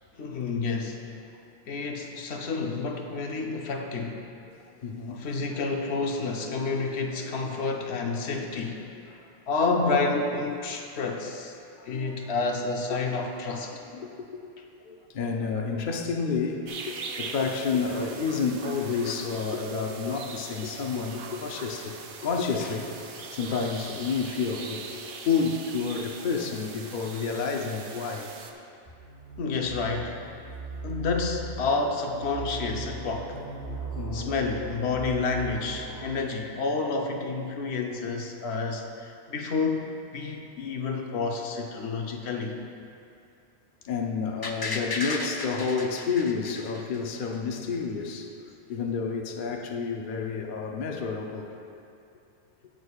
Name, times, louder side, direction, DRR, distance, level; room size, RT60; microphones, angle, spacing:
voice 1, 0.2-1.3 1.7-4.3 5.1-8.9 9.5-11.6 11.9-13.7 29.4-30.3 30.8-33.4 34.1-42.6, left 4 dB, 85° left, 2 dB, 1.0 m, -29 dB
voice 2, 4.8-5.2 7.5-7.6 9.1-9.3 11.8-12.3 12.9-13.0 13.9-14.4 14.8-22.9 23.3-28.3 34.0-34.4 36.1-36.2 43.9-48.3 48.7-51.6, left 5 dB, 55° left, 2 dB, 0.8 m, -30 dB
sound 1, 16.7-28.5, right 5 dB, 60° right, 0.8 m, -41 dB
sound 2, 28.9-36.1, right 4 dB, 90° right, 1.3 m, -38 dB
sound 3, 44.4-47.4 47.7-47.8, left 2 dB, 30° left, 0.4 m, -34 dB
17.0 x 6.3 x 2.4 m, 2.6 s
omnidirectional pair, 1.1 m